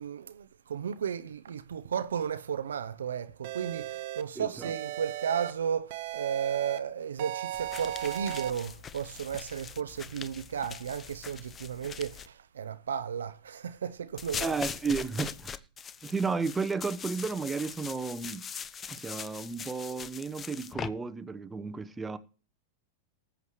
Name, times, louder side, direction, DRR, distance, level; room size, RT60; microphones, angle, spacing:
voice 1, 0.0-14.6, right 8 dB, 75° right, 0.6 m, -34 dB
sound 1, 3.4-4.2 4.6-5.5 5.9-6.8 7.2-8.5, right 14 dB, 55° right, 1.0 m, -36 dB
voice 2, 4.4-4.7 14.4-15.6 16.0-18.5 18.9-22.2, right 4 dB, 15° right, 1.0 m, -33 dB
sound 2, 7.5-12.3 14.2-20.9, left 7 dB, 25° left, 0.8 m, -41 dB
19.0 x 8.1 x 3.1 m
hypercardioid pair, 100°, 0 cm